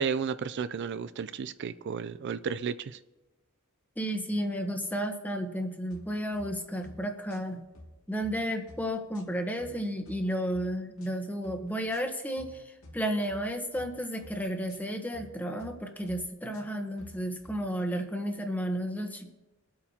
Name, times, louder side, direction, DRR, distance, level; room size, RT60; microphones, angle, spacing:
voice 1, 0.0-3.0, right 6 dB, 55° right, 14 dB, 0.4 m, -33 dB
voice 2, 4.0-7.7 8.1-19.3, equal, 10° left, 4 dB, 1.1 m, -32 dB
sound 1, 5.9-6.5 6.8-7.0 7.3-7.9 8.2-8.4 8.7-9.8 10.1-10.6 11.0-11.2 11.4-12.0 12.4-12.5 12.8-13.4 13.7-13.9 14.2-14.8 15.1-15.3 15.6-16.2 16.5-17.6, left 1 dB, 75° left, 2.3 m, -51 dB
23.0 x 8.6 x 2.8 m, 1.1 s
head